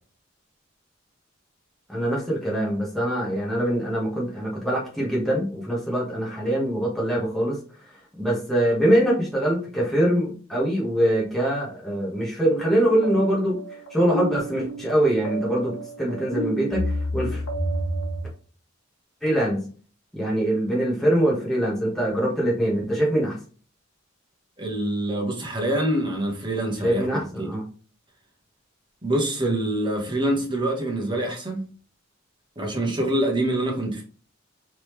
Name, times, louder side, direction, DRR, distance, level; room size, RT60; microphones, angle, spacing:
voice 1, 1.9-7.6 8.2-13.6 13.9-17.4 19.2-19.7 20.1-23.4 26.8-27.6, right 1 dB, ahead, 1.3 m, -23 dB
sound 1, 12.4-18.2, right 1 dB, 80° left, 1.2 m, -31 dB
voice 2, 24.6-27.5 29.0-31.7 32.6-34.0, right 1 dB, 25° right, 1.2 m, -25 dB
3.9 x 3.4 x 3.1 m
head